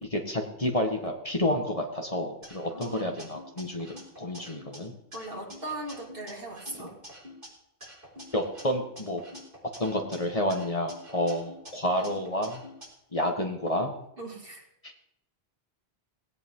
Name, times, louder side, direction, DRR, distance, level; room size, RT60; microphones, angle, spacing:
voice 1, 0.0-4.9 6.7-6.9 8.3-9.2 9.8-12.6 13.1-13.9 14.8-14.9, left 1 dB, 35° left, 2 dB, 1.8 m, -30 dB
sound 1, 2.4-4.8 5.1-7.5 7.8-10.2 10.5-12.9, equal, 40° right, 5.5 m, -47 dB
voice 2, 2.7-3.3 5.1-6.9 14.2-14.7, right 2 dB, 60° right, -1 dB, 3.2 m, -39 dB
18.5 x 17.0 x 3.8 m, 0.80 s
omnidirectional pair, 1.1 m